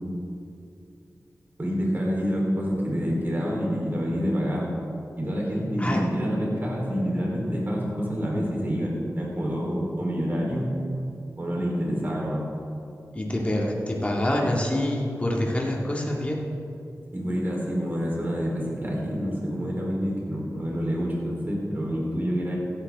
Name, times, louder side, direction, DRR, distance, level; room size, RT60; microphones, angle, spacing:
voice 1, 1.6-4.7 5.2-10.7 11.4-12.4 17.1-22.6, equal, 35° right, -3 dB, 3.7 m, -27 dB
voice 2, 13.1-16.4, left 1 dB, 20° left, -2 dB, 2.0 m, -26 dB
15.5 x 12.0 x 3.6 m, 2.6 s
wide cardioid pair, 90°, 6 cm